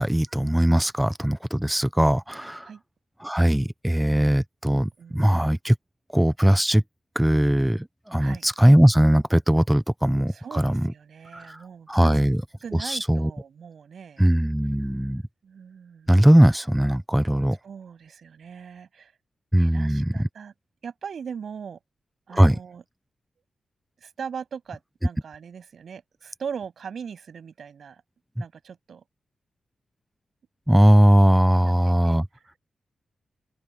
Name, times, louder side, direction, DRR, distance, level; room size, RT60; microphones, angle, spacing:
voice 1, 0.0-2.7 3.2-5.7 6.1-6.8 7.2-10.9 11.3-11.4 11.9-12.4 12.9-13.3 14.2-15.2 16.1-17.6 19.5-20.3 22.3-22.6 30.7-32.3, equal, 5° right, 0.5 m, -19 dB
voice 2, 5.0-5.5 8.2-8.4 10.3-12.2 12.6-14.2 15.4-16.1 17.6-19.1 19.6-20.5 20.8-21.8 22.3-22.8 24.0-28.0 28.4-29.0 31.6-32.2, right 7 dB, 55° right, 7.9 m, -40 dB
open air
wide cardioid pair, 165°, 0 cm